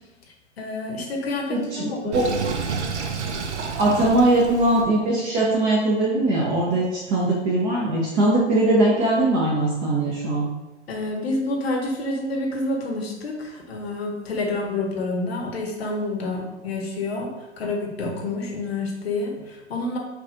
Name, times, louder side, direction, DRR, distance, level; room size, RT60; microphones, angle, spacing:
voice 1, 0.6-2.2 3.8-4.0 10.9-17.3 17.6-20.0, left 2 dB, 60° left, 1 dB, 1.2 m, -28 dB
voice 2, 1.5-2.2 3.8-10.4, right 2 dB, 25° right, -4 dB, 0.7 m, -21 dB
Sink (filling or washing), 2.1-4.9, right 5 dB, 70° right, 0.6 m, -29 dB
4.8 x 2.5 x 3.8 m, 1.1 s
figure-of-eight pair, 110°, 36 cm